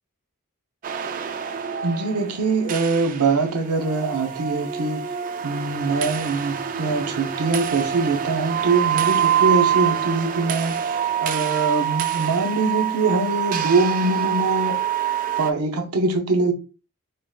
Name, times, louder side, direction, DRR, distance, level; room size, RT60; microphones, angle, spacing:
sound 1, 0.8-15.5, right 10 dB, 40° right, 0.3 m, -25 dB
voice 1, 1.8-14.8 15.4-16.5, right 3 dB, 90° right, 0.6 m, -23 dB
4.6 x 2.8 x 2.2 m
head